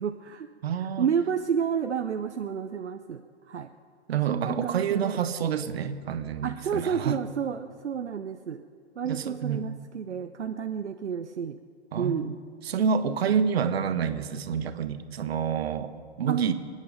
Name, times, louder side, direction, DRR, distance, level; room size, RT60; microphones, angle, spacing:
voice 1, 0.0-0.5 0.8-3.7 4.3-5.2 6.4-8.6 9.0-11.6 11.9-12.4 13.2-13.4 16.3-16.5, right 7 dB, 80° right, 7 dB, 0.7 m, -30 dB
voice 2, 0.6-1.1 4.1-7.2 9.0-9.7 11.9-12.3 12.6-16.5, right 7 dB, 65° right, 11 dB, 1.2 m, -28 dB
28.5 x 9.6 x 5.3 m, 2.1 s
figure-of-eight pair, 115°, 34 cm